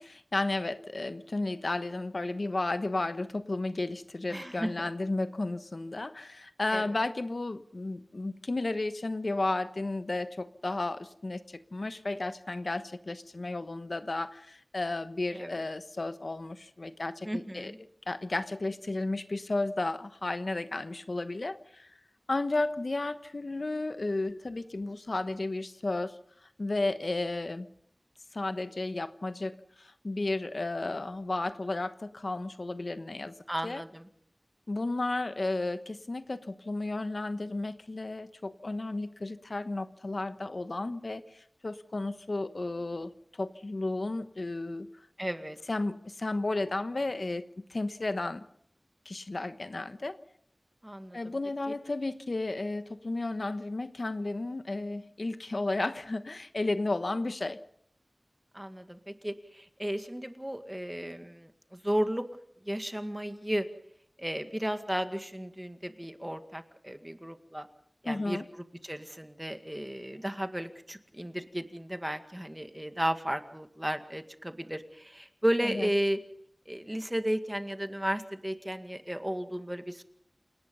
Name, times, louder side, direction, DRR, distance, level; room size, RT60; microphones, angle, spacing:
voice 1, 0.0-17.7 18.1-21.9 22.3-27.7 28.3-33.3 33.6-33.8 34.7-44.9 45.7-48.4 49.0-50.2 51.1-57.6 68.1-68.5 75.6-75.9, left 2 dB, 70° left, 11 dB, 1.1 m, -33 dB
voice 2, 4.3-4.9 6.7-6.9 15.3-15.5 17.3-17.8 33.5-34.1 45.2-45.6 50.8-51.4 58.5-62.3 62.6-63.7 64.2-67.7 68.0-76.2 76.7-80.0, equal, 15° right, 8 dB, 2.0 m, -34 dB
28.5 x 18.0 x 5.5 m, 0.65 s
wide cardioid pair, 50°, 0 cm